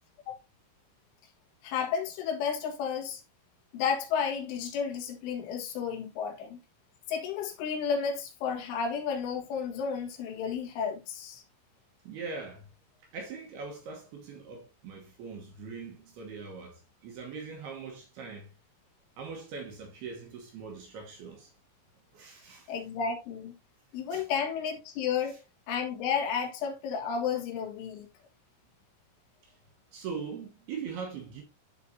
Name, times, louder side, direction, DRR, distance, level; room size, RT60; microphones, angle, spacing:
voice 1, 1.6-3.2 3.7-6.6 7.1-11.4 22.7-23.5 23.9-25.4 25.7-28.1, left 6 dB, 80° left, 3.9 m, -32 dB
voice 2, 12.0-12.7 13.0-18.5 19.2-21.5 22.1-22.8 24.1-24.3 29.4-29.6 29.9-31.4, right 5 dB, 70° right, 2.7 m, -41 dB
12.0 x 4.2 x 2.7 m
omnidirectional pair, 5.6 m